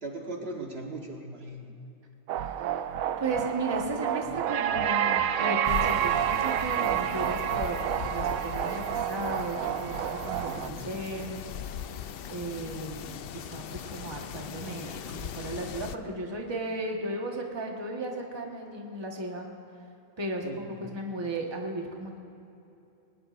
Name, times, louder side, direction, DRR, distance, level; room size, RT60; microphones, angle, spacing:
voice 1, 0.0-1.6 10.5-11.0 20.4-21.0, right 2 dB, 50° right, 0 dB, 1.4 m, -39 dB
sound 1, 2.3-10.7, right 10 dB, 90° right, 1.0 m, -29 dB
voice 2, 2.4-2.8 3.2-11.4 12.3-19.5 20.2-22.2, right 2 dB, 20° right, 0 dB, 1.3 m, -35 dB
sound 2, 5.7-16.0, left 8 dB, 65° left, 0.6 m, -39 dB
20.5 x 19.0 x 2.5 m, 2.8 s
omnidirectional pair, 1.4 m